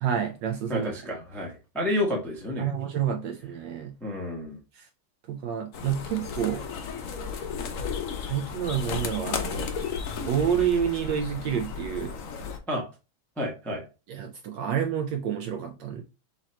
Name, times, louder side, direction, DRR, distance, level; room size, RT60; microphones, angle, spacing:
voice 1, 0.0-0.9 2.6-4.0 4.7-4.9 5.3-6.7 8.2-9.7 10.2-12.1 14.1-16.0, right 8 dB, 75° right, 1.1 m, -29 dB
voice 2, 0.7-2.7 4.0-4.6 12.7-12.8 13.4-13.8, left 1 dB, ahead, 0.4 m, -30 dB
sound 1, 5.7-12.6, left 6 dB, 85° left, 0.7 m, -34 dB
3.9 x 3.1 x 4.1 m
omnidirectional pair, 2.4 m